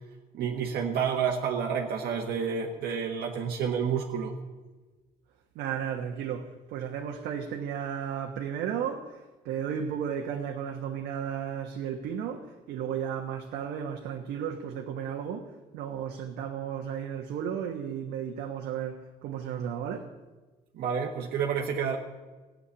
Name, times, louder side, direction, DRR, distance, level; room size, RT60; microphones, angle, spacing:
voice 1, 0.3-4.4 20.7-22.0, right 7 dB, 70° right, 1.5 m, -29 dB
voice 2, 5.5-9.1 9.4-20.1, right 8 dB, 85° right, 1.3 m, -34 dB
14.5 x 7.8 x 10.0 m
cardioid pair, 110°, 17 cm